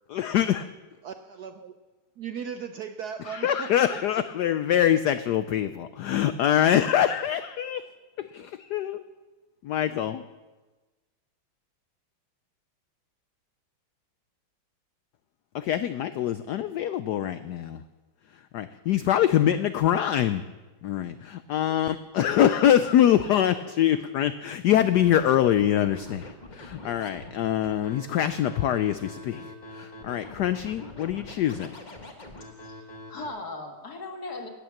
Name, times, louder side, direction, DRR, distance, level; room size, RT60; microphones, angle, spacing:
voice 1, 0.1-0.7 3.3-7.8 8.2-9.0 9.6-10.2 15.5-17.8 18.5-20.4 20.8-31.7, left 10 dB, 70° left, 11 dB, 1.0 m, -24 dB
voice 2, 1.0-1.8 2.2-4.0, right 7 dB, 70° right, 8 dB, 1.0 m, -37 dB
Scratching (performance technique), 24.8-33.3, left 1 dB, 25° left, 1.5 m, -44 dB
voice 3, 32.4-34.5, left 2 dB, 50° left, 3 dB, 2.3 m, -39 dB
18.0 x 9.1 x 7.2 m, 1.2 s
omnidirectional pair, 2.2 m